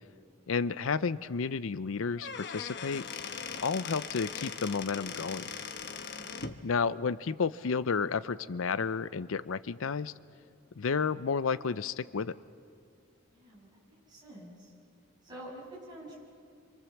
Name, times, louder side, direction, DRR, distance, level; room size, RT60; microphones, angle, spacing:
voice 1, 0.5-3.0 3.6-5.5 6.6-10.1 10.8-12.4, left 5 dB, 75° left, 16 dB, 0.5 m, -31 dB
Squeak / Wood, 2.0-6.6, left 6 dB, 55° left, 1.1 m, -40 dB
voice 2, 6.1-6.6 13.3-14.7 15.2-16.2, right 1 dB, 20° right, -5 dB, 7.4 m, -48 dB
28.0 x 25.5 x 7.2 m, 2.4 s
head